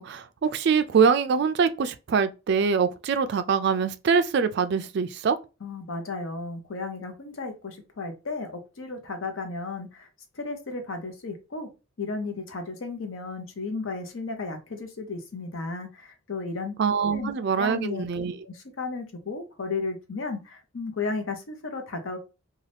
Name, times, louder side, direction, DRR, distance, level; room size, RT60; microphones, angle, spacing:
voice 1, 0.0-5.4 16.8-18.3, right 6 dB, 50° right, 0.3 m, -24 dB
voice 2, 5.6-10.1 10.3-11.7 12.0-16.8 17.1-17.3 17.6-18.1 18.4-22.2, left 3 dB, 70° left, 0.7 m, -34 dB
2.6 x 2.3 x 3.3 m
head